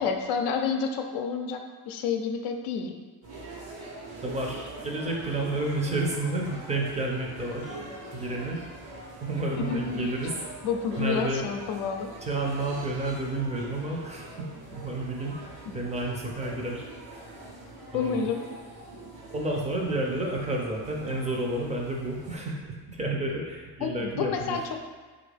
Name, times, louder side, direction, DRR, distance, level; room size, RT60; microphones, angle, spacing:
voice 1, 0.0-3.0 9.6-10.1 10.6-12.1 15.7-15.8 17.9-18.4 23.8-24.6, left 6 dB, 80° left, 4 dB, 0.5 m, -29 dB
sound 1, 3.2-22.3, right 2 dB, 80° right, 1.1 m, -43 dB
voice 2, 4.2-7.8 8.1-8.6 9.2-10.3 11.0-11.5 12.2-16.9 17.9-18.3 19.3-24.5, right 2 dB, 15° right, -1 dB, 0.5 m, -31 dB
3.5 x 2.5 x 3.3 m, 1.4 s
cardioid pair, 130°, 41 cm